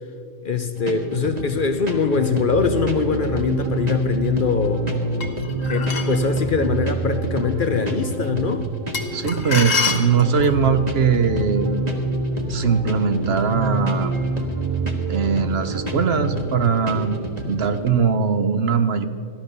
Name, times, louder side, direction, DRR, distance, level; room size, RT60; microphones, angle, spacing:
voice 1, 0.4-4.9 5.7-8.7, left 5 dB, 50° left, 8 dB, 0.8 m, -22 dB
sound 1, 0.7-17.9, right 2 dB, 35° right, 1.5 m, -27 dB
sound 2, 5.2-6.2 8.9-10.6, left 4 dB, 85° left, 1.9 m, -26 dB
voice 2, 9.1-11.7 12.5-14.1 15.1-19.1, right 6 dB, 60° right, 9 dB, 0.9 m, -21 dB
14.5 x 11.5 x 6.6 m, 2.3 s
omnidirectional pair, 1.3 m